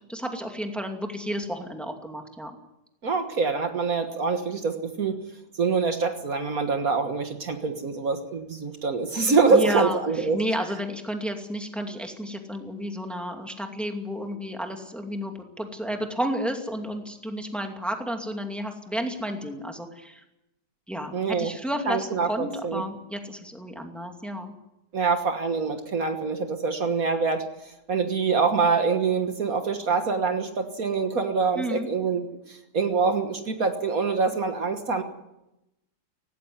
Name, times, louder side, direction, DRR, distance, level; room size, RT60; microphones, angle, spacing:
voice 1, 0.1-2.6 9.5-20.2 20.9-24.5 31.5-31.9, equal, ahead, 3 dB, 2.4 m, -32 dB
voice 2, 3.0-5.2 5.6-10.4 21.1-21.5 21.9-22.8 24.9-27.5 27.9-35.0, right 4 dB, 60° right, 6 dB, 1.9 m, -25 dB
18.0 x 16.5 x 9.7 m, 0.91 s
omnidirectional pair, 1.8 m